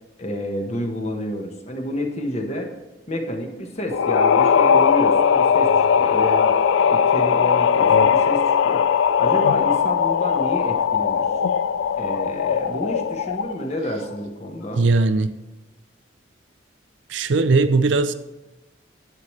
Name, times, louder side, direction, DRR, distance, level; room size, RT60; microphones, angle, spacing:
voice 1, 0.2-2.7 3.1-5.7 6.0-6.6 6.9-8.9 9.2-11.3 12.0-14.9, equal, 35° left, 1.2 m, -29 dB
sound 1, 3.9-13.6, left 7 dB, 85° left, 0.3 m, -19 dB
voice 2, 14.7-15.3 17.1-18.1, right 3 dB, 75° right, 0.6 m, -18 dB
10.5 x 8.7 x 3.2 m
head